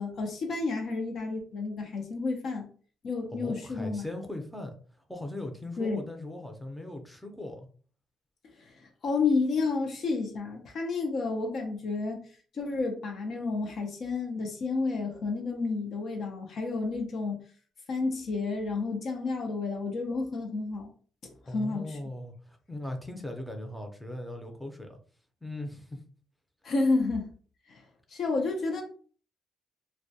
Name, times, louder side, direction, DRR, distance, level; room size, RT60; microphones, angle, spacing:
voice 1, 0.0-2.6 3.0-4.0 5.8-6.0 8.6-12.3 12.5-17.4 17.9-20.9 21.5-22.0 26.6-27.3 27.7-27.8 28.1-28.8, left 3 dB, 60° left, 0.5 m, -30 dB
voice 2, 3.3-4.8 5.1-7.7 21.5-25.0 25.4-26.0, left 1 dB, 5° left, 0.5 m, -39 dB
2.2 x 2.1 x 2.7 m
cardioid pair, 90°, 0 cm